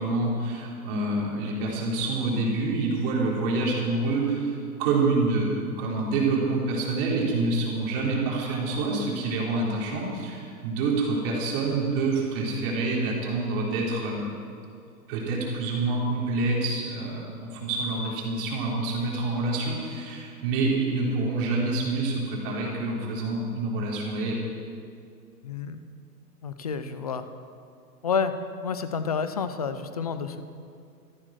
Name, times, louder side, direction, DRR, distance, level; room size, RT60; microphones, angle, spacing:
voice 1, 0.0-14.2 15.1-24.4, right 3 dB, 35° right, -3 dB, 4.2 m, -27 dB
voice 2, 25.4-25.8 26.4-27.3 28.0-28.3 28.6-30.4, left 6 dB, 25° left, 11 dB, 0.4 m, -29 dB
14.5 x 13.0 x 6.2 m, 2.3 s
hypercardioid pair, 140°, 50 cm